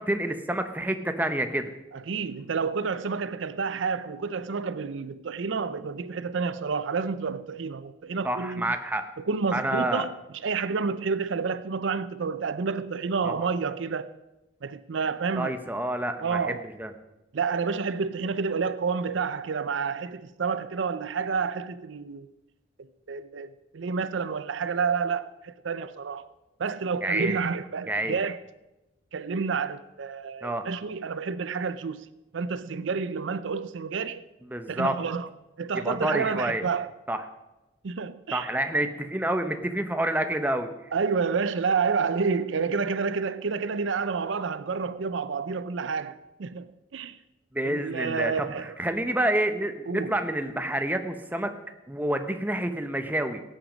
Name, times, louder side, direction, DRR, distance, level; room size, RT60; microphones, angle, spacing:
voice 1, 0.1-1.7 8.2-9.0 9.5-10.1 13.2-13.5 15.4-16.4 16.8-16.9 27.0-27.3 27.9-28.2 30.4-30.6 34.5-34.9 35.7-36.6 37.1-37.2 38.3-40.7 47.5-51.5 51.9-53.4, right 1 dB, 10° right, 0.8 m, -28 dB
voice 2, 1.9-8.7 9.2-10.1 10.4-14.1 14.6-15.6 16.2-16.6 17.3-22.3 23.1-26.3 26.6-28.4 29.1-32.1 32.3-34.2 34.7-35.3 35.6-36.9 37.8-38.5 40.9-47.2 47.6-48.8 49.9-50.2, right 5 dB, 70° right, 0.5 m, -29 dB
17.0 x 9.0 x 5.1 m
head